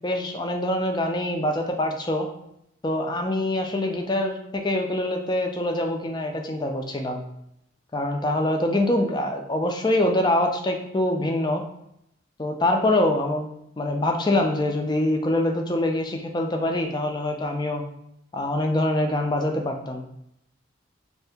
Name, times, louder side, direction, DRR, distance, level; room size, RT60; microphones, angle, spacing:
voice 1, 0.0-2.3 2.8-7.2 7.9-11.6 12.4-13.5 13.8-17.8 18.3-20.1, left 1 dB, 20° left, 3 dB, 0.4 m, -24 dB
2.7 x 2.6 x 3.4 m, 0.78 s
head